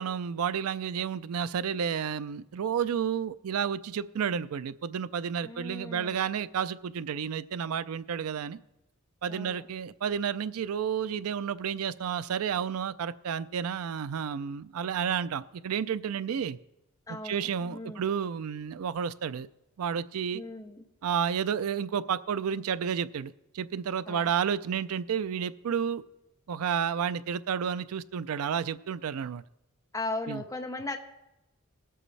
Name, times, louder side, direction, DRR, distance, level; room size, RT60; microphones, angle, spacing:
voice 1, 0.0-8.6 9.2-16.6 17.2-19.5 19.8-20.4 21.0-26.0 26.5-29.4 30.3-30.4, right 7 dB, 80° right, 0.4 m, -31 dB
voice 2, 5.4-6.4 9.3-9.7 17.1-18.1 20.3-20.8 24.1-24.3 29.9-31.0, left 2 dB, 15° left, 0.7 m, -38 dB
19.0 x 7.8 x 3.2 m
head